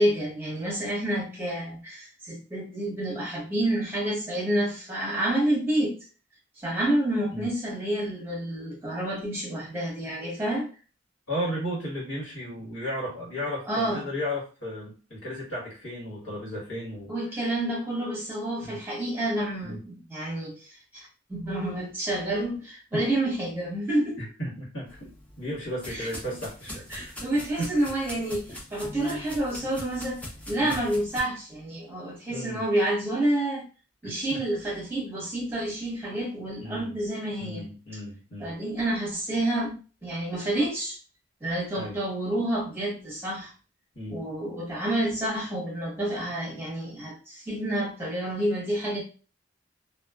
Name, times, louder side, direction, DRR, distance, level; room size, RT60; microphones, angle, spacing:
voice 1, 0.0-6.0 6.6-10.7 13.7-14.0 17.1-20.7 20.9-24.2 25.9-26.1 26.9-30.2 30.5-33.6 34.0-37.6 38.4-39.7 40.0-41.0 41.4-43.5 44.1-49.0, right 1 dB, 10° right, -4 dB, 1.0 m, -29 dB
voice 2, 11.3-17.1 18.6-18.8 19.6-19.8 22.9-23.0 24.2-25.1 25.4-27.1 27.6-27.9 30.6-30.8 32.3-32.6 34.0-34.4 36.6-36.9 37.4-38.6 41.7-42.0 43.9-44.2, equal, 75° left, -6 dB, 1.3 m, -34 dB
sound 1, 24.9-31.2, left 1 dB, 5° left, 0.5 m, -42 dB
2.3 x 2.3 x 2.3 m, 0.35 s
head